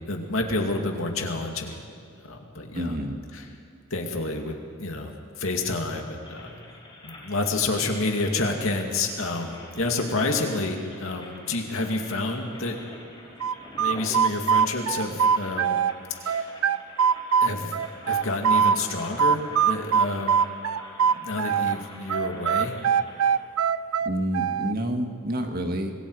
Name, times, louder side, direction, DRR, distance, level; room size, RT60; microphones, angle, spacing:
voice 1, 0.1-1.8 2.2-3.0 3.3-3.4 3.9-6.6 7.0-12.8 13.8-15.8 16.2-16.5 17.4-17.8 18.1-20.4 21.1-22.8, left 2 dB, 75° left, 2 dB, 2.4 m, -29 dB
voice 2, 2.7-3.2 24.0-25.9, equal, 45° right, 4 dB, 1.8 m, -28 dB
sound 1, 6.2-23.3, left 1 dB, 20° left, 4.9 m, -46 dB
sound 2, 13.4-15.9 16.3-18.8 19.2-21.8 22.1-24.7, right 7 dB, 85° right, 0.5 m, -22 dB
25.5 x 21.0 x 4.9 m, 2.4 s
head